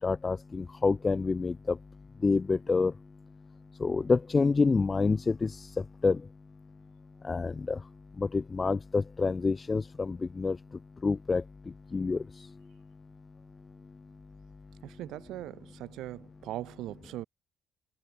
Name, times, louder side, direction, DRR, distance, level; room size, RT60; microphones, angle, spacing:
voice 1, 0.0-1.8 2.2-2.9 3.8-5.7 6.0-6.2 7.2-7.8 8.2-10.6 11.0-11.4 11.9-12.2, left 4 dB, 30° left, 4.0 m, -27 dB
voice 2, 14.8-17.2, right 15 dB, 90° right, 4.5 m, -40 dB
cardioid pair, 90°, 0 cm